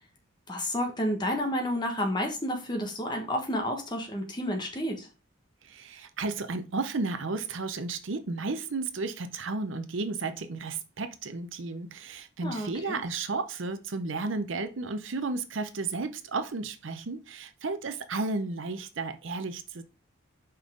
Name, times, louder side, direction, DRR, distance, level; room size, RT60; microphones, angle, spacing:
voice 1, 0.5-5.1 12.4-13.0, equal, 20° left, 1.4 m, -30 dB
voice 2, 5.6-19.8, right 3 dB, 65° right, 0.6 m, -33 dB
5.6 x 5.4 x 3.7 m
head